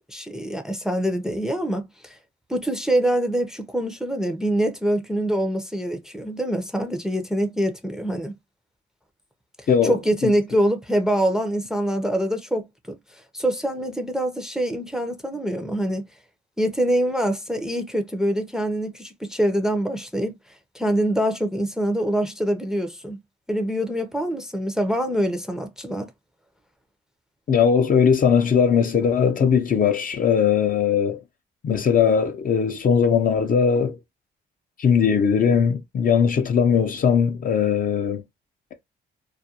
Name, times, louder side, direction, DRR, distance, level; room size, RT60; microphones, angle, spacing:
voice 1, 0.1-2.2 2.5-8.3 9.8-13.0 13.3-16.1 16.6-20.4 20.7-23.2 23.5-26.1, right 1 dB, 5° right, 0.5 m, -24 dB
voice 2, 27.5-31.2 31.6-34.0 34.8-38.2, left 7 dB, 45° left, 0.6 m, -19 dB
2.4 x 2.1 x 2.7 m
cardioid pair, 90°, 20 cm